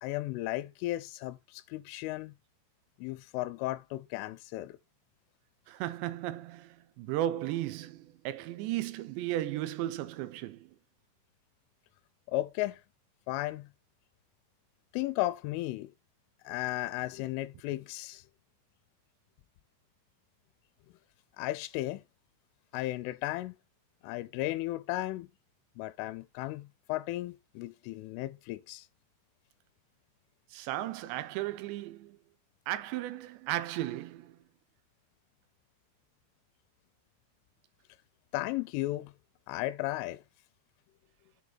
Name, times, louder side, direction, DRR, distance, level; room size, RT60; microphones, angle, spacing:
voice 1, 0.0-2.3 3.0-4.8 12.3-12.8 13.3-13.7 14.9-15.9 16.4-18.2 21.4-22.0 22.7-23.6 24.0-25.3 25.8-28.9 38.3-39.1 39.5-40.2, left 17 dB, 85° left, 3.2 m, -35 dB
voice 2, 5.7-10.7 30.5-32.2 32.7-34.4, right 14 dB, 75° right, 2.7 m, -35 dB
8.0 x 4.7 x 4.0 m
omnidirectional pair, 5.7 m